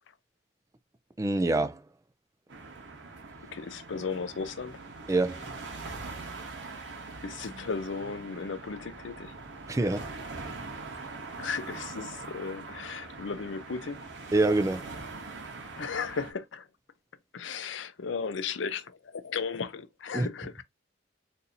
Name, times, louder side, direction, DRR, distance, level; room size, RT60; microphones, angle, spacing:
voice 1, 1.2-1.8 5.1-5.4 9.7-10.1 14.3-14.9 20.1-20.3, right 2 dB, 15° right, 0.3 m, -25 dB
sound 1, 2.5-16.3, right 3 dB, 70° right, 1.0 m, -42 dB
voice 2, 3.5-4.8 7.2-9.3 11.4-14.1 15.8-16.7 17.3-20.6, left 5 dB, 75° left, 0.5 m, -35 dB
4.2 x 2.6 x 2.6 m
head